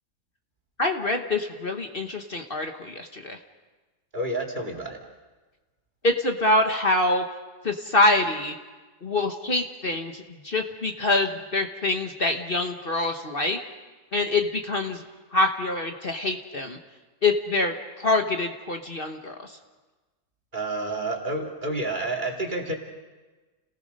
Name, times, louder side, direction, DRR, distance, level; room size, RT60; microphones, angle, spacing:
voice 1, 0.8-3.4 6.0-7.2 7.6-8.5 9.0-13.6 14.1-15.0 15.3-16.8 17.2-19.5, left 2 dB, 40° left, 4 dB, 1.3 m, -25 dB
voice 2, 4.1-5.0 20.5-22.7, right 2 dB, 30° right, 0 dB, 2.8 m, -29 dB
30.0 x 18.5 x 5.4 m, 1.3 s
omnidirectional pair, 1.7 m